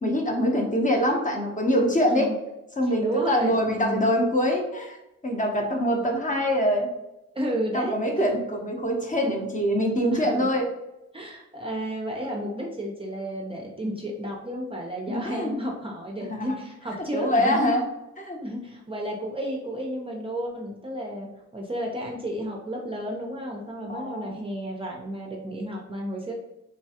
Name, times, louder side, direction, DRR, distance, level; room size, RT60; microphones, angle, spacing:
voice 1, 0.0-2.3 2.8-5.0 5.2-6.9 7.5-10.7 15.1-15.5 16.3-16.6 17.1-17.8 18.2-18.4 23.9-24.4, equal, 25° left, 1 dB, 0.7 m, -24 dB
voice 2, 2.8-4.1 7.3-8.0 10.1-10.5 11.1-17.6 18.4-26.3, equal, 20° right, -1 dB, 0.5 m, -32 dB
3.2 x 2.2 x 2.7 m, 0.91 s
cardioid pair, 75°, 30 cm